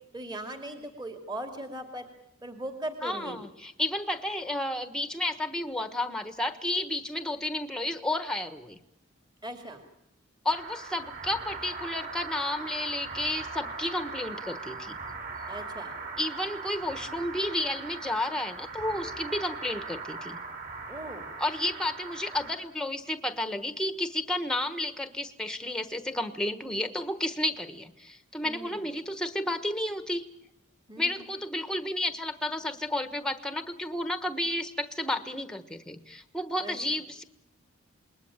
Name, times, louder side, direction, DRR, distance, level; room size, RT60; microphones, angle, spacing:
voice 1, 0.1-2.1 2.4-3.4 9.4-9.8 15.5-15.9 20.9-21.3 28.4-28.9 30.9-31.2 36.6-36.8, right 1 dB, 20° right, 5 dB, 2.4 m, -39 dB
voice 2, 3.0-8.8 10.4-15.0 16.2-20.4 21.4-30.2 31.0-37.2, left 1 dB, 5° left, 10 dB, 1.2 m, -32 dB
sound 1, 10.5-22.5, right 3 dB, 40° right, 5.8 m, -40 dB
27.5 x 21.0 x 8.9 m, 0.84 s
head